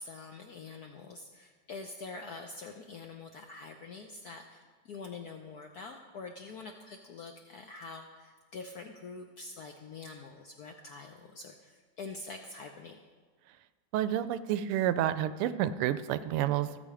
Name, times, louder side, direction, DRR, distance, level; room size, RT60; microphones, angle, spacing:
voice 1, 0.0-13.0, left 4 dB, 70° left, 4 dB, 0.9 m, -45 dB
voice 2, 13.9-16.8, right 11 dB, 85° right, 13 dB, 1.5 m, -29 dB
16.0 x 7.0 x 4.9 m, 1.4 s
omnidirectional pair, 2.4 m